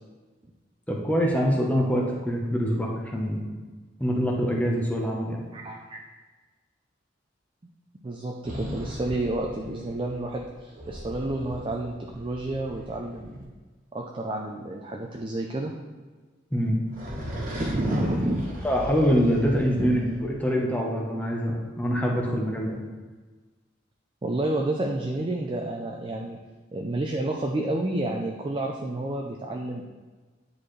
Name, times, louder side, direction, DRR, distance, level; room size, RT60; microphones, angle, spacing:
voice 1, 0.9-3.4 4.0-5.4 16.5-16.8 18.6-22.8, equal, 10° left, -2 dB, 0.9 m, -25 dB
voice 2, 5.5-6.0 8.0-13.5 13.9-15.7 17.6-18.5 19.8-19.9 24.2-26.4 26.7-29.8, right 2 dB, 25° right, 1 dB, 0.4 m, -30 dB
sound 1, 8.4-13.4 16.9-20.2, equal, 45° right, 1.5 m, -37 dB
9.8 x 4.2 x 3.2 m, 1.3 s
head